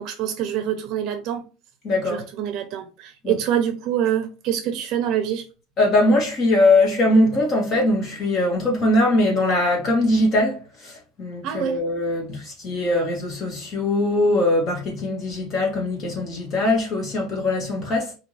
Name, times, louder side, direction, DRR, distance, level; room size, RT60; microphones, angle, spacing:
voice 1, 0.0-1.4 2.1-5.4 11.4-11.8, right 10 dB, 45° right, 0.7 m, -25 dB
voice 2, 1.8-2.3 3.2-3.4 5.8-18.1, left 1 dB, 35° left, 2.0 m, -21 dB
4.9 x 2.8 x 3.3 m
cardioid pair, 165°, 0 cm